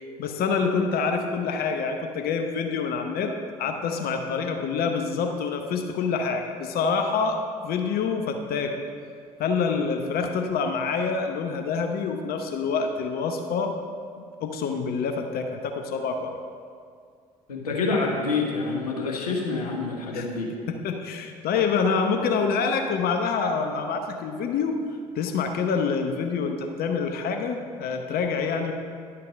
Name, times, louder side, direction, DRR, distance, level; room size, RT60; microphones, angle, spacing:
voice 1, 0.2-3.3 3.6-8.7 9.4-13.7 14.4-16.4 20.1-20.3 20.7-24.7 25.1-28.7, left 5 dB, 55° left, 5 dB, 0.9 m, -26 dB
voice 2, 17.5-20.5, left 3 dB, 85° left, -1 dB, 1.2 m, -27 dB
11.0 x 5.7 x 5.2 m, 2.2 s
figure-of-eight pair, 55°, 19 cm